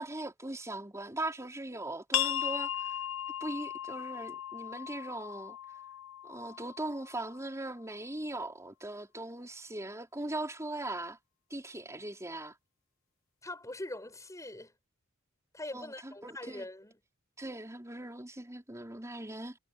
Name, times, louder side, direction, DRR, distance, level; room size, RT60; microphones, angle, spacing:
voice 1, 0.0-3.0 3.4-5.6 6.2-11.2 11.5-12.5 15.7-16.7 17.4-19.6, right 2 dB, 15° right, 4.0 m, -40 dB
sound 1, 2.1-7.5, left 10 dB, 70° left, 1.2 m, -37 dB
voice 2, 13.4-14.7 15.5-17.0, left 1 dB, 15° left, 7.2 m, -42 dB
head